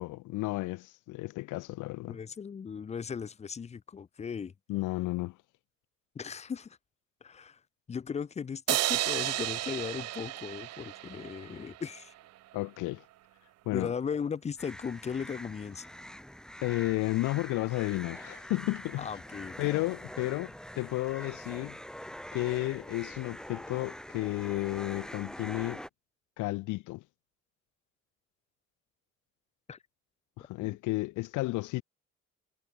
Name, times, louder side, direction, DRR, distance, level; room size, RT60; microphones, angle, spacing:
voice 1, 0.0-2.2 4.7-5.4 12.5-13.0 13.7-13.9 16.6-19.1 19.6-21.8 22.3-25.8 26.4-27.0 30.4-31.8, left 20 dB, 85° left, 0.4 m, -32 dB
voice 2, 2.1-4.5 6.1-6.8 7.2-7.6 7.9-12.1 13.7-15.9 19.0-19.8 29.7-29.8, left 6 dB, 25° left, 0.4 m, -37 dB
sound 1, 8.7-12.0, right 15 dB, 60° right, 0.4 m, -32 dB
sound 2, 14.6-25.9, equal, ahead, 1.6 m, -44 dB
cardioid pair, 90°, 30 cm